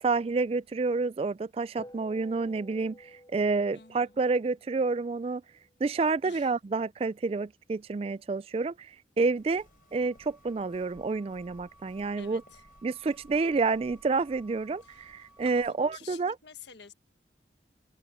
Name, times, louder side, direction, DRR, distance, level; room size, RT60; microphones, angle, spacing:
voice 1, 0.0-5.4 5.8-9.6 9.9-12.4 12.8-16.4, right 4 dB, 35° right, 0.3 m, -29 dB
sound 1, 1.8-6.4, equal, 20° left, 6.9 m, -54 dB
voice 2, 3.7-4.1 6.2-6.5 12.2-12.6 14.8-16.9, left 7 dB, 75° left, 1.5 m, -51 dB
sound 2, 9.3-15.8, right 2 dB, 5° right, 5.9 m, -60 dB
Walk footsteps, 9.4-15.7, left 1 dB, 50° left, 5.1 m, -60 dB
open air
head